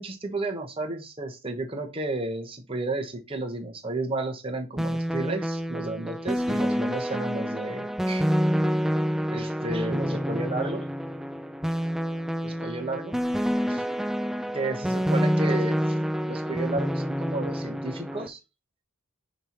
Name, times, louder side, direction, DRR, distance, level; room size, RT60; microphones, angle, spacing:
voice 1, 0.0-8.2 9.3-10.8 12.4-13.1 13.7-13.9 14.5-15.9 16.3-18.4, right 2 dB, 25° right, 3 dB, 1.2 m, -32 dB
sound 1, 4.8-18.3, equal, ahead, 0.4 m, -27 dB
6.5 x 3.1 x 5.8 m, 0.28 s
head